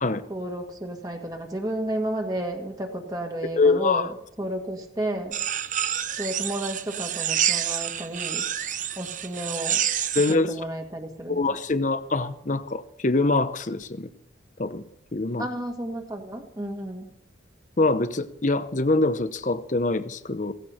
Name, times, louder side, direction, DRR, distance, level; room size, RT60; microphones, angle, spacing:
voice 1, 0.3-4.1 4.4-5.4 6.2-8.5 9.0-9.8 10.3-11.5 15.4-17.1, right 1 dB, 20° right, 2 dB, 1.8 m, -32 dB
voice 2, 3.6-4.1 10.1-10.5 11.3-14.1 14.6-14.8 15.1-15.5 17.8-20.5, left 3 dB, 40° left, 12 dB, 0.8 m, -24 dB
sound 1, 5.3-10.3, right 10 dB, 40° right, 0.7 m, -28 dB
16.5 x 16.0 x 4.4 m, 0.74 s
head